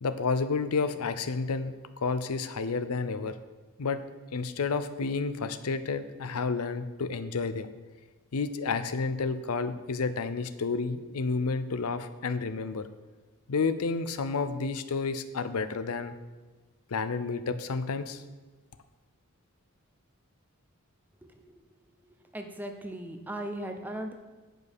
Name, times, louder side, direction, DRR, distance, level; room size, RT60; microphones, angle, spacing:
voice 1, 0.0-3.4 3.8-4.0 4.3-7.7 8.3-12.9 13.5-16.1 16.9-18.2, left 4 dB, 85° left, 11 dB, 0.6 m, -30 dB
voice 2, 21.2-21.6 22.3-24.1, right 1 dB, 10° right, 5 dB, 0.7 m, -38 dB
9.0 x 5.4 x 6.3 m, 1.3 s
head